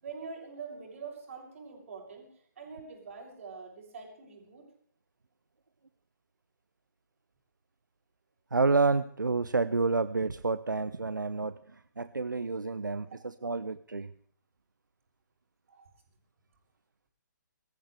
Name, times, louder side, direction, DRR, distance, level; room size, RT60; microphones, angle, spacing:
voice 1, 0.0-4.7 13.1-13.2 15.7-15.9, right 5 dB, 45° right, 1 dB, 6.7 m, -45 dB
voice 2, 8.5-13.1 13.4-14.1, right 3 dB, 75° right, 15 dB, 0.7 m, -29 dB
23.5 x 15.0 x 3.4 m, 0.63 s
figure-of-eight pair, 135°, 10 cm